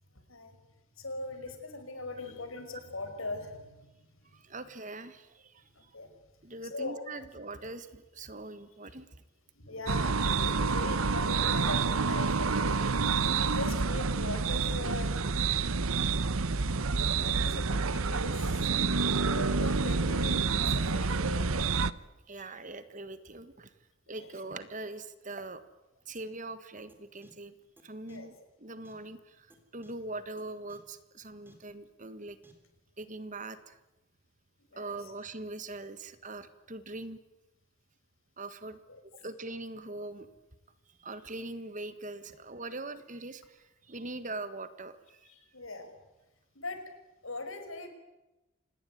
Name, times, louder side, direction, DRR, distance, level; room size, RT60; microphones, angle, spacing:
voice 1, 1.0-3.9 5.8-6.1 6.6-7.0 9.6-15.1 17.2-18.6 19.2-21.7 22.3-22.4 24.1-24.3 28.1-28.3 34.7-35.1 38.9-39.0 45.3-45.9 46.6-46.8 47.2-47.9, left 2 dB, 70° left, 7 dB, 5.4 m, -41 dB
voice 2, 4.3-5.6 6.4-9.1 22.3-23.7 24.1-25.6 26.1-27.5 27.8-29.5 29.7-32.4 33.0-33.8 34.8-37.2 38.4-38.8 39.1-40.3 41.0-45.2, right 2 dB, 35° right, 12 dB, 1.6 m, -42 dB
sound 1, 9.9-21.9, right 4 dB, 75° right, 0.9 m, -28 dB
sound 2, 26.9-27.0 27.2-27.3 27.8-27.9 28.1-28.2 28.8-28.9 29.5-29.6 29.8-29.9 30.4-30.5 30.7-30.8 31.5-31.6 32.4-32.5, right 1 dB, 10° right, 3.8 m, -58 dB
27.0 x 19.5 x 9.3 m, 1.0 s
head